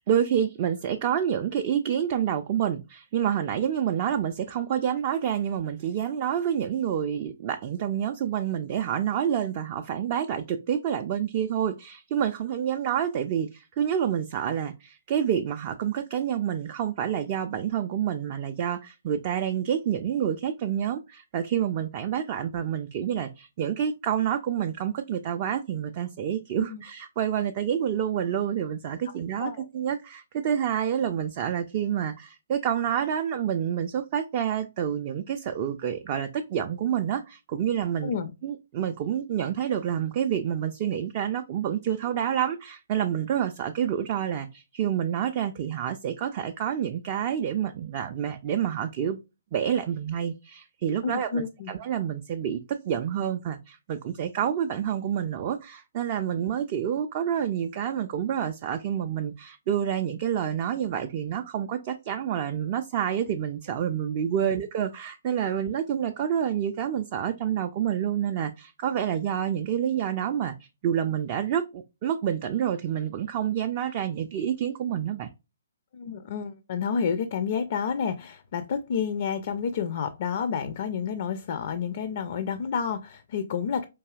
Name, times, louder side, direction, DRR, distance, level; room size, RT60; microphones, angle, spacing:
voice 1, 0.0-38.1 38.4-49.2 49.5-70.5 70.8-75.3, right 9 dB, 35° right, 0.3 m, -28 dB
voice 2, 51.0-51.7 64.4-64.5 75.9-83.9, left 6 dB, 45° left, 0.4 m, -30 dB
4.6 x 2.7 x 2.3 m
figure-of-eight pair, 130°, 0 cm